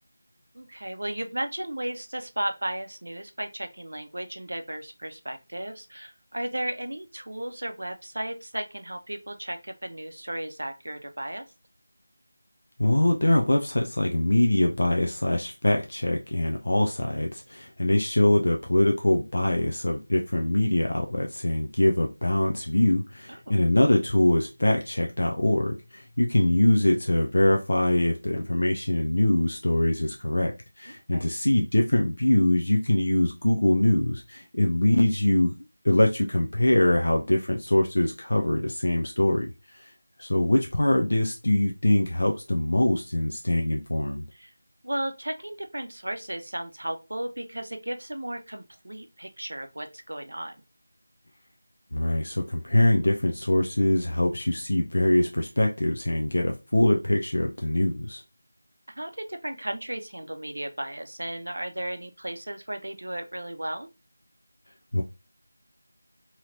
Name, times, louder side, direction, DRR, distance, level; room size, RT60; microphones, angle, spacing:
voice 1, 0.5-11.4 23.3-23.5 30.9-31.3 44.3-44.5 44.8-50.6 58.9-63.9, right 1 dB, 80° right, 7 dB, 0.5 m, -35 dB
voice 2, 12.8-35.5 35.8-39.5 39.7-39.9 40.2-44.2 51.9-58.2 64.9-65.0, left 1 dB, 70° left, 2 dB, 0.4 m, -23 dB
2.9 x 2.8 x 2.6 m, 0.28 s
figure-of-eight pair, 175°, 0 cm